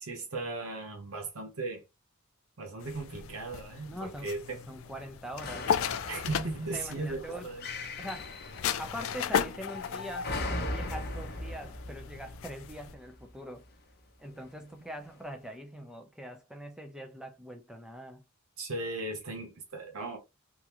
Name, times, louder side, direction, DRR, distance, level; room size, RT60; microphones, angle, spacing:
voice 1, 0.0-1.8 2.6-4.6 6.1-7.7 18.6-20.2, right 2 dB, 70° right, 0.8 m, -37 dB
sound 1, 2.8-12.9, left 7 dB, 65° left, 0.4 m, -36 dB
voice 2, 3.9-5.7 6.7-7.5 8.0-8.3 8.8-10.3 10.7-13.7 14.2-18.2, equal, 5° right, 0.5 m, -43 dB
sound 2, 5.4-13.6 14.4-14.5, left 2 dB, 45° left, 0.8 m, -40 dB
3.6 x 2.2 x 2.9 m
head